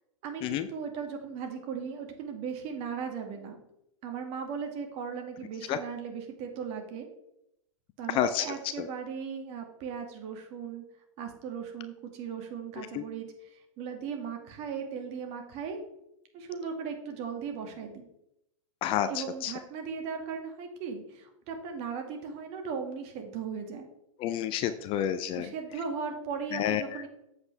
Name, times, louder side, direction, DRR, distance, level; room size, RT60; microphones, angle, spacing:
voice 1, 0.2-3.6 4.0-7.1 8.0-10.8 11.2-15.8 16.3-18.1 19.1-23.9 25.4-27.1, right 6 dB, 40° right, 4 dB, 2.1 m, -37 dB
voice 2, 8.1-8.5 8.8-8.9 12.9-13.0 18.8-19.5 24.2-25.5 26.5-26.8, left 10 dB, 30° left, 11 dB, 0.5 m, -29 dB
8.1 x 7.9 x 3.4 m, 0.81 s
hypercardioid pair, 120°, 17 cm